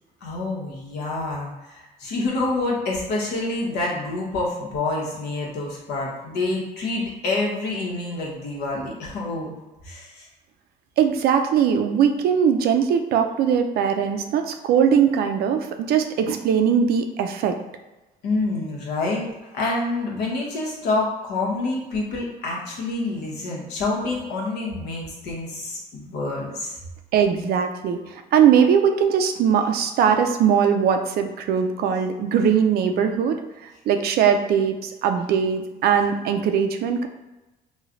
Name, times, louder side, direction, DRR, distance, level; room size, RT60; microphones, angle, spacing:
voice 1, 0.2-9.5 9.8-10.3 18.2-19.2 19.5-26.8, left 2 dB, 75° left, -2 dB, 1.1 m, -27 dB
voice 2, 11.0-17.6 27.1-33.4 33.9-37.1, right 7 dB, 65° right, 6 dB, 0.4 m, -20 dB
3.2 x 2.3 x 3.8 m, 1.1 s
cardioid pair, 110°, 17 cm